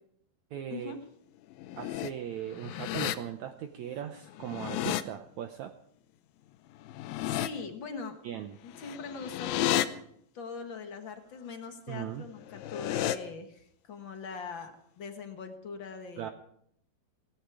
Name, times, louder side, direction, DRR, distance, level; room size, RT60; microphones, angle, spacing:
voice 1, 0.5-0.9 1.8-5.7 8.2-8.6 11.9-12.2 16.2-16.3, right 10 dB, 75° right, 7 dB, 1.7 m, -38 dB
sound 1, 1.5-2.1 2.5-3.1 4.3-5.0 6.8-7.5 8.7-9.9 12.4-13.2, left 13 dB, 80° left, 2.5 m, -32 dB
voice 2, 7.2-8.2 8.6-9.9 10.3-16.3, left 4 dB, 50° left, 6 dB, 1.6 m, -41 dB
17.5 x 16.5 x 4.8 m, 0.69 s
omnidirectional pair, 4.1 m